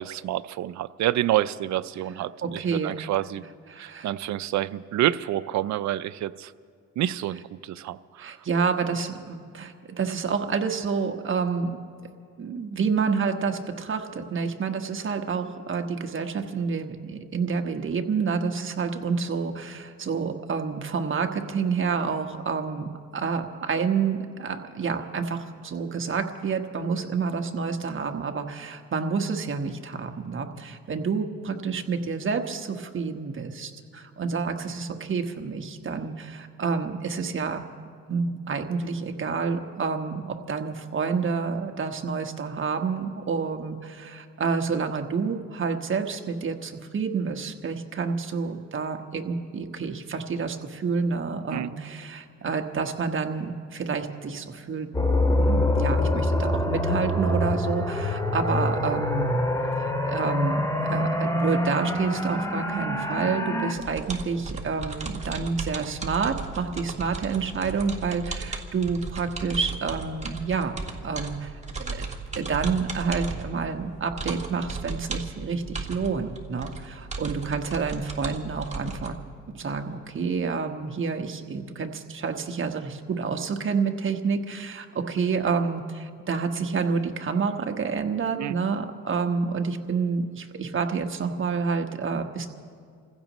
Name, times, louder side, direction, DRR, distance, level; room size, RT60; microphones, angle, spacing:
voice 1, 0.0-3.4 3.8-6.5 7.0-8.3 51.5-51.7 88.4-88.6, right 13 dB, 70° right, 14 dB, 0.5 m, -28 dB
voice 2, 2.4-3.0 3.7-4.1 8.2-11.8 12.4-37.6 38.1-54.9 55.4-59.3 59.8-70.7 71.0-72.0 72.4-79.2 79.5-92.5, right 5 dB, 40° right, 5 dB, 1.3 m, -29 dB
sound 1, 54.9-63.7, left 1 dB, 10° left, 2.1 m, -25 dB
sound 2, 63.8-79.1, right 3 dB, 25° right, 1.8 m, -36 dB
29.0 x 15.5 x 3.1 m, 2.2 s
cardioid pair, 90°, 30 cm